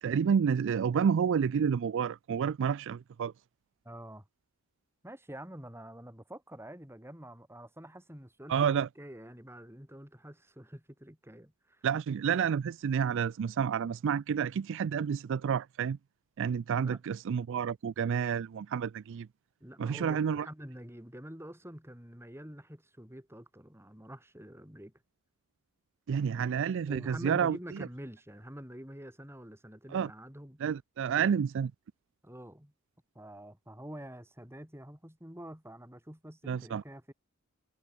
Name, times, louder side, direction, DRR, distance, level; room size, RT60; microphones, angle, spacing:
voice 1, 0.0-3.3 8.5-8.9 11.8-16.0 16.4-19.3 19.8-20.5 26.1-27.6 29.9-30.1 30.6-31.7 36.5-36.8, right 7 dB, 55° right, 0.3 m, -29 dB
voice 2, 3.8-4.3 5.0-11.9 16.9-17.0 19.6-24.9 26.3-26.5 26.9-30.6 31.2-31.4 32.2-32.7 33.1-37.1, equal, 10° right, 5.0 m, -47 dB
head